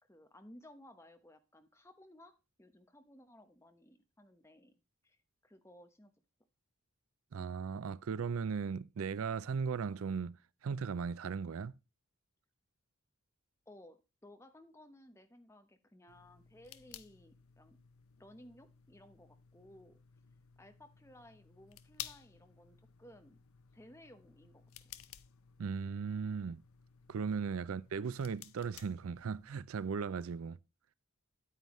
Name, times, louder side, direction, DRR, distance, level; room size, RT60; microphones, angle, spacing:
voice 1, 0.0-4.7 5.0-5.2 5.4-6.1 13.7-17.8 18.2-20.0 20.6-23.4 23.7-24.6, left 1 dB, 10° left, 1.0 m, -58 dB
voice 2, 7.3-10.4 10.6-11.7 25.6-26.6 27.1-30.6, right 5 dB, 75° right, 0.4 m, -37 dB
sound 1, 16.1-29.6, left 11 dB, 75° left, 0.6 m, -55 dB
9.2 x 9.1 x 3.1 m
head